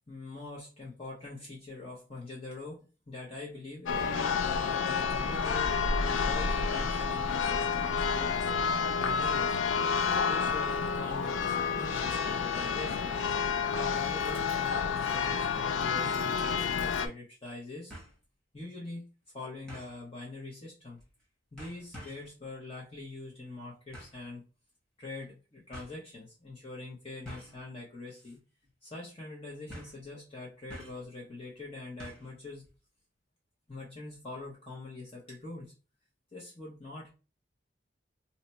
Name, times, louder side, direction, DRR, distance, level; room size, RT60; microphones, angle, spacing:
voice 1, 0.1-9.6 10.2-13.1 13.4-17.9 18.5-19.1 19.3-21.0 21.5-24.4 25.0-28.4 28.8-32.7 33.7-35.7 36.3-37.1, left 2 dB, 30° left, -4 dB, 0.8 m, -44 dB
Church bell, 3.9-17.1, left 5 dB, 80° left, 0.4 m, -29 dB
sound 1, 16.0-16.4 16.8-16.9 17.9-18.2 19.7-20.0 21.0-21.2 21.6-22.3 23.9-24.2 25.2-25.3 25.7-25.9 27.2-27.6 28.1-28.4 28.6-28.7 29.7-30.0 30.7-31.1 32.0-32.3 32.6-32.7, equal, 5° left, 1.1 m, -47 dB
2.8 x 2.1 x 4.0 m, 0.32 s
head